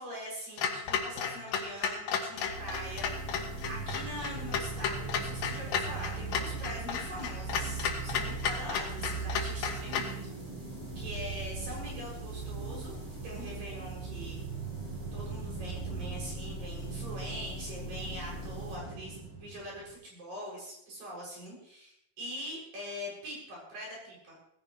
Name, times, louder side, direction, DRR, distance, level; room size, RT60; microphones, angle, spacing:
voice 1, 0.0-3.1 3.7-10.2 11.0-14.5 15.1-24.4, equal, 55° right, -4 dB, 8.9 m, -43 dB
Clock, 0.6-10.2, left 7 dB, 70° left, 3.5 m, -34 dB
sound 1, 2.4-19.9, right 3 dB, 30° right, 5.4 m, -39 dB
18.0 x 16.5 x 3.3 m, 0.74 s
omnidirectional pair, 4.7 m